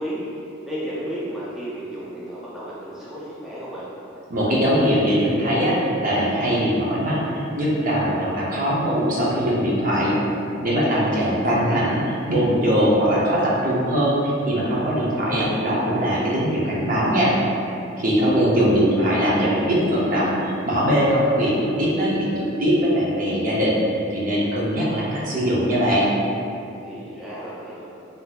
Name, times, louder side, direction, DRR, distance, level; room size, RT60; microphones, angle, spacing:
voice 1, 0.0-3.9 11.0-11.6 18.2-18.7 26.8-27.8, equal, ahead, -9 dB, 0.4 m, -33 dB
voice 2, 4.3-10.1 10.6-17.3 18.0-26.1, equal, 45° right, -6 dB, 0.6 m, -21 dB
3.6 x 2.6 x 2.3 m, 2.7 s
head